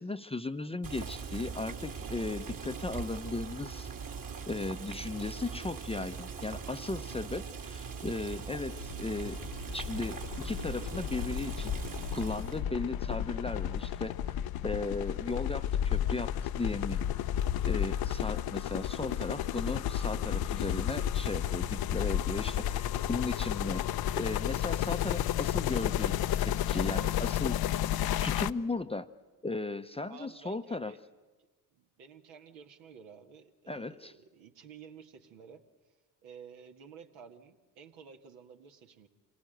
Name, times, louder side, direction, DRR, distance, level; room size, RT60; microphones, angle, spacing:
voice 1, 0.0-3.9 4.5-9.4 9.7-11.7 12.1-14.4 14.6-17.0 17.6-23.8 24.1-27.6 28.2-29.1 29.4-30.9 33.7-34.1, left 3 dB, 10° left, 9 dB, 0.8 m, -36 dB
Boiling, 0.8-12.6, right 5 dB, 40° right, 2.4 m, -41 dB
sound 1, 8.7-28.5, left 11 dB, 50° left, 0.7 m, -32 dB
voice 2, 26.9-27.4 30.1-31.0 31.7-35.6 36.2-39.1, right 6 dB, 70° right, 4 dB, 2.1 m, -52 dB
26.0 x 18.0 x 9.3 m, 1.3 s
hypercardioid pair, 60°, 50 cm